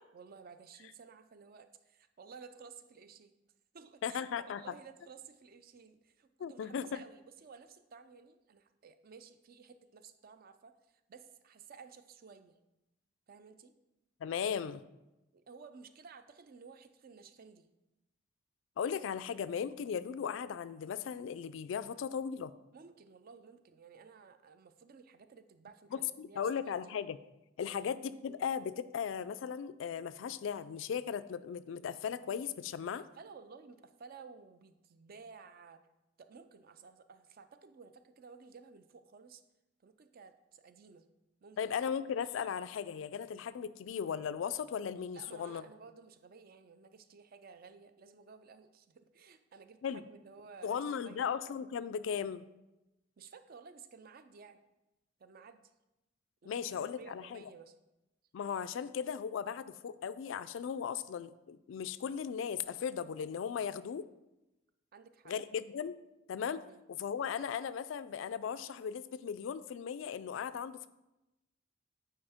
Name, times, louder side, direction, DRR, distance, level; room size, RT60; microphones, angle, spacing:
voice 1, 0.1-3.3 3.7-12.6 13.3-13.7 15.3-17.7 22.7-27.0 27.7-27.9 32.8-35.8 36.2-39.4 39.8-41.1 41.4-41.6 45.1-51.3 53.2-54.6 55.2-55.7 56.4-57.8 64.9-65.3 66.6-66.8, right 5 dB, 50° right, 10 dB, 0.4 m, -55 dB
voice 2, 4.0-4.6 6.4-7.0 14.2-14.8 18.8-22.5 25.9-27.2 27.6-33.0 41.6-45.6 49.8-50.0 50.6-52.4 56.5-57.4 58.3-64.1 65.3-66.0 66.3-66.6 66.9-70.9, left 7 dB, 70° left, 15 dB, 0.3 m, -37 dB
8.7 x 4.4 x 3.5 m, 0.96 s
head